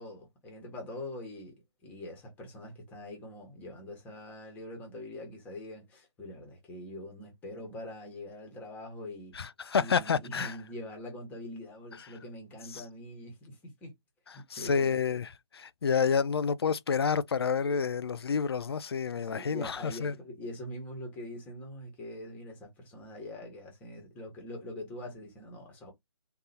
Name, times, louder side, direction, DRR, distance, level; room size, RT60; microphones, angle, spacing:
voice 1, 0.0-9.4 9.8-13.9 14.3-15.0 19.2-25.9, left 1 dB, 10° left, 1.3 m, -43 dB
voice 2, 9.3-10.6 12.0-12.1 12.7-12.8 14.3-20.1, left 6 dB, 55° left, 0.4 m, -29 dB
3.9 x 2.7 x 4.2 m
figure-of-eight pair, 145°, 15 cm